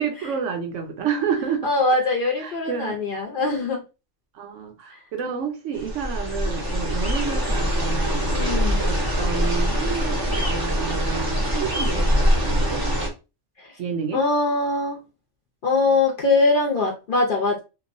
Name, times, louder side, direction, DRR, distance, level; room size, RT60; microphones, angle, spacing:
voice 1, 0.0-1.7 2.4-3.0 4.3-8.5 8.9-12.8 13.8-14.2, right 6 dB, 75° right, 1.0 m, -30 dB
voice 2, 1.6-3.8 4.9-5.0 8.3-8.9 13.6-13.7 14.1-15.0 15.6-17.6, left 3 dB, 55° left, 0.6 m, -22 dB
sound 1, 5.7-13.1, equal, 25° right, 0.5 m, -23 dB
2.9 x 2.1 x 2.5 m
omnidirectional pair, 1.3 m